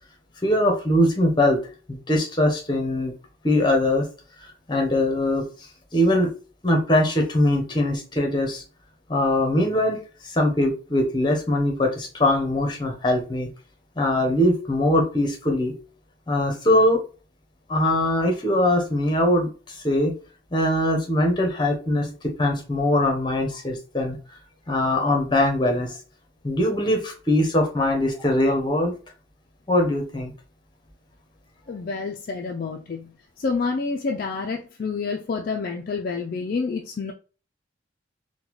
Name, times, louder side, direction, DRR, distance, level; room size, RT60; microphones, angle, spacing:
voice 1, 0.4-1.6 1.9-3.1 3.4-4.1 4.7-5.4 5.9-6.3 6.6-8.6 9.1-10.0 10.2-13.5 14.0-15.7 16.3-17.0 17.7-20.1 20.5-22.1 22.4-24.2 24.7-25.9 26.4-28.9 29.7-30.3, left 1 dB, 25° left, 0.8 m, -21 dB
voice 2, 31.7-37.1, left 4 dB, 50° left, 0.3 m, -28 dB
3.9 x 2.2 x 3.0 m
head